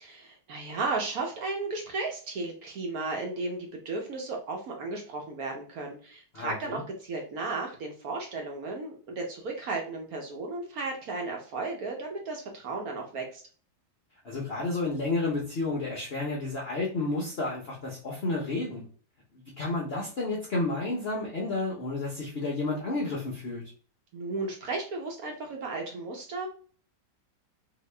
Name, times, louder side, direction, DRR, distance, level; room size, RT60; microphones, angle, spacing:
voice 1, 0.0-13.4 24.1-26.5, right 3 dB, 60° right, 1 dB, 1.1 m, -34 dB
voice 2, 6.3-6.8 14.2-18.8 19.6-23.6, left 2 dB, 60° left, -3 dB, 0.6 m, -31 dB
2.9 x 2.8 x 3.2 m, 0.41 s
omnidirectional pair, 2.0 m